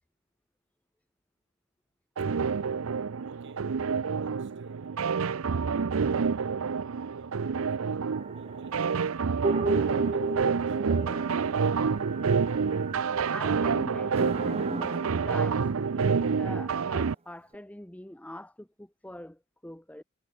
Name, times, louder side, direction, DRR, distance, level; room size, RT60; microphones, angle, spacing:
sound 1, 2.2-17.1, right 5 dB, 80° right, 0.6 m, -28 dB
voice 1, 3.2-3.8 4.1-4.9 5.4-9.5 9.8-12.4, right 2 dB, 60° right, 4.3 m, -55 dB
sound 2, 8.1-13.6 14.2-16.5 17.5-17.6, right 3 dB, 30° right, 0.6 m, -35 dB
voice 2, 13.3-20.0, left 1 dB, 5° left, 0.8 m, -43 dB
head